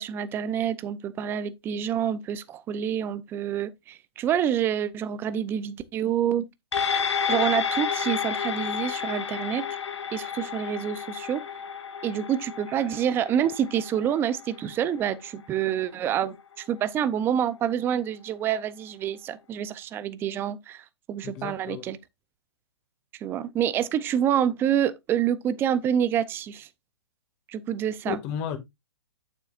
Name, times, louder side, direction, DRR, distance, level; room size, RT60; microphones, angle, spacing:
voice 1, 0.0-6.4 7.3-9.7 10.1-11.4 12.0-22.0 23.2-26.7 27.5-28.2, right 9 dB, 15° right, 0.6 m, -27 dB
sound 1, 6.7-15.4 15.8-15.9, left 7 dB, 80° left, 1.9 m, -31 dB
voice 2, 21.2-21.9 28.1-28.6, left 9 dB, 30° left, 2.0 m, -33 dB
8.7 x 7.2 x 2.5 m
hypercardioid pair, 145°, 14 cm